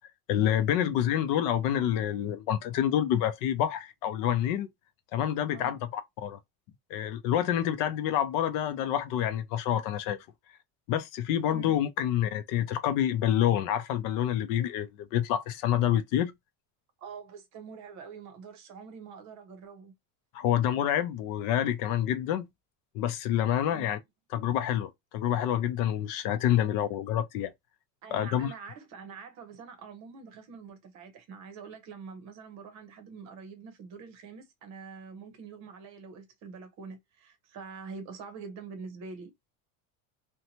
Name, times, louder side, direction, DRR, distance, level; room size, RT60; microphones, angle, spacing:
voice 1, 0.3-4.7 5.1-6.4 6.9-10.2 10.9-16.3 20.3-22.5 22.9-24.0 24.3-27.5 28.1-28.5, left 11 dB, 55° left, 0.5 m, -27 dB
voice 2, 17.0-19.9 23.7-24.0 28.0-39.3, right 5 dB, 45° right, 0.9 m, -45 dB
2.7 x 2.2 x 2.8 m
cardioid pair, 170°, 40 cm